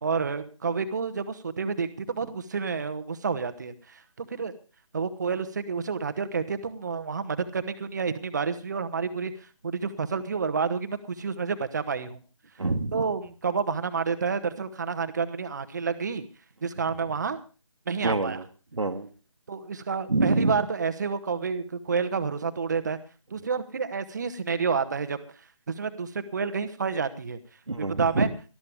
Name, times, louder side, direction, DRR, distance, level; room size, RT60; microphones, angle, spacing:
voice 1, 0.0-4.5 4.9-9.3 9.6-12.2 12.9-16.2 16.6-17.4 17.9-18.4 19.5-23.0 23.3-25.2 25.7-27.4 28.0-28.3, right 5 dB, 35° right, 10 dB, 1.0 m, -29 dB
voice 2, 12.6-13.1 18.0-18.5 18.7-19.1 20.1-20.6 27.7-28.3, right 3 dB, 70° right, 4 dB, 1.4 m, -26 dB
18.5 x 13.0 x 3.5 m, 0.34 s
figure-of-eight pair, 155°, 17 cm